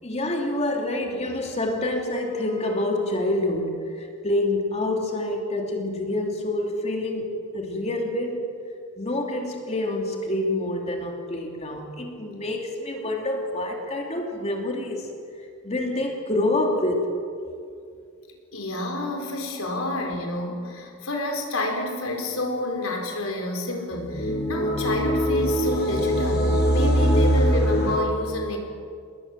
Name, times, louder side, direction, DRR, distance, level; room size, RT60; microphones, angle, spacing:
voice 1, 0.0-8.4 9.0-15.1 15.4-17.1, left 1 dB, 30° left, 2 dB, 3.0 m, -27 dB
voice 2, 18.5-28.6, left 1 dB, 75° left, 2 dB, 5.0 m, -29 dB
sound 1, 23.9-28.0, equal, 50° left, 5.8 m, -22 dB
29.0 x 20.0 x 7.6 m, 2.3 s
head